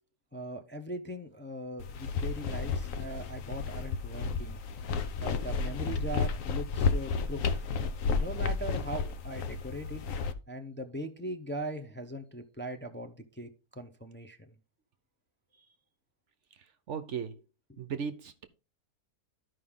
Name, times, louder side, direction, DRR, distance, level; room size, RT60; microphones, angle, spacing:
voice 1, 0.3-4.6 5.2-7.7 8.2-10.0 10.5-14.5, right 1 dB, 10° left, 0.5 m, -40 dB
sound 1, 1.8-10.3, left 5 dB, 65° left, 1.1 m, -32 dB
voice 2, 16.5-17.4 17.8-18.4, right 6 dB, 60° right, 0.9 m, -37 dB
13.0 x 5.3 x 3.6 m
omnidirectional pair, 1.6 m